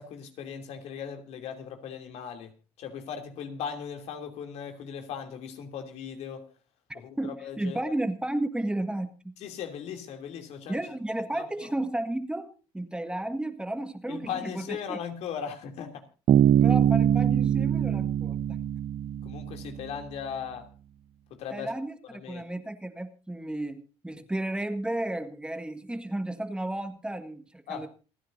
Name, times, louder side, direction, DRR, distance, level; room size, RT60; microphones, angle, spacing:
voice 1, 0.0-2.5 2.8-6.5 6.9-7.9 9.4-10.8 11.3-11.7 14.1-16.0 19.2-20.7 21.3-21.7 22.1-22.5 27.7-27.9, left 7 dB, 65° left, 2.9 m, -38 dB
voice 2, 6.9-9.3 10.7-15.0 16.6-18.6 21.5-22.0 22.3-27.9, right 1 dB, 10° right, 1.7 m, -33 dB
Bass guitar, 16.3-19.9, right 10 dB, 55° right, 0.8 m, -23 dB
28.0 x 10.0 x 2.7 m
supercardioid pair, 85°, 12 cm